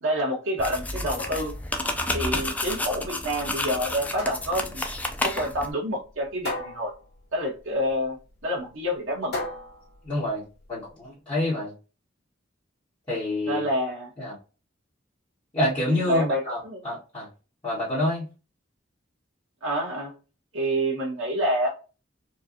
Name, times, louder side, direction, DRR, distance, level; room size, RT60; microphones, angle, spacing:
voice 1, 0.0-1.5 2.1-4.8 5.2-6.9 7.3-8.2 8.4-9.3 13.4-14.1 15.9-16.8 19.6-20.1 20.5-21.7, equal, 85° right, 0 dB, 1.5 m, -27 dB
sound 1, 0.6-5.7, left 2 dB, 10° left, 0.4 m, -30 dB
sound 2, 1.2-10.9, left 2 dB, 60° left, 1.7 m, -39 dB
voice 2, 10.0-10.4 10.7-11.7 13.1-13.6 14.2-14.3 15.5-17.3 17.6-18.3, left 1 dB, 25° left, -11 dB, 1.6 m, -27 dB
4.5 x 2.4 x 2.7 m, 0.33 s
head